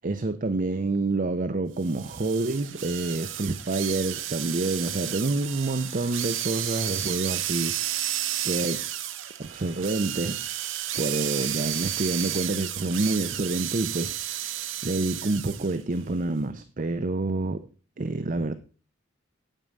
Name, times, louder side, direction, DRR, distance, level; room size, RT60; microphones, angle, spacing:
voice 1, 0.0-8.8 9.4-10.4 10.9-17.7 18.0-18.5, right 2 dB, 40° right, 0.6 m, -28 dB
sound 1, 1.8-15.8, right 12 dB, 75° right, 0.8 m, -32 dB
9.1 x 8.5 x 5.3 m
head